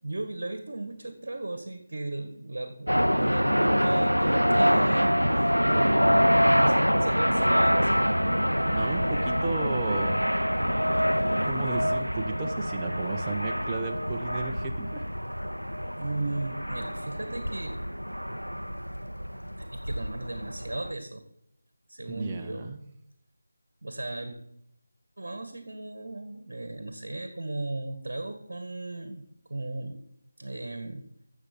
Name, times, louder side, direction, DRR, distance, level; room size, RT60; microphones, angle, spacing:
voice 1, 0.0-8.1 16.0-17.8 18.7-18.8 19.6-21.2 21.9-22.7 23.8-24.4 25.2-30.0 30.4-31.0, right 2 dB, 50° right, 8 dB, 1.8 m, -36 dB
sound 1, 2.9-20.9, equal, 90° right, 0.5 m, -25 dB
voice 2, 8.7-10.2 11.4-15.0 22.1-22.8, right 3 dB, 15° right, 2 dB, 1.2 m, -34 dB
15.0 x 7.3 x 6.2 m, 0.80 s
figure-of-eight pair, 160°, 0 cm